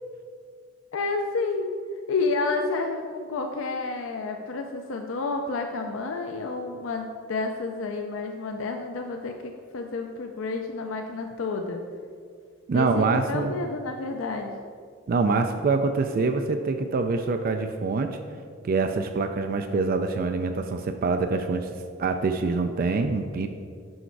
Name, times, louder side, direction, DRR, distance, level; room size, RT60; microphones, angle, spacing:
voice 1, 0.9-1.7 2.1-11.8 12.7-14.6, left 3 dB, 80° left, 4 dB, 0.5 m, -30 dB
voice 2, 12.7-13.5 15.1-18.2 18.6-21.7 22.0-23.5, right 4 dB, 45° right, 6 dB, 0.4 m, -25 dB
6.3 x 5.6 x 4.6 m, 2.2 s
head